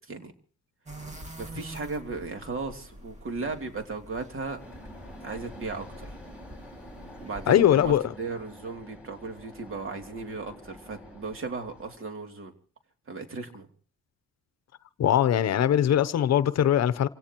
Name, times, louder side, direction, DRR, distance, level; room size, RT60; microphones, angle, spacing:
sound 1, 0.9-8.0, right 1 dB, 25° right, 2.1 m, -46 dB
voice 1, 1.4-4.6 5.2-6.1 7.2-12.5 13.1-13.7, right 3 dB, 45° right, 2.9 m, -36 dB
sound 2, 4.6-12.0, equal, 5° right, 5.3 m, -47 dB
voice 2, 7.5-8.1 15.0-17.1, left 10 dB, 60° left, 0.8 m, -21 dB
27.5 x 17.0 x 3.0 m
cardioid pair, 90°, 30 cm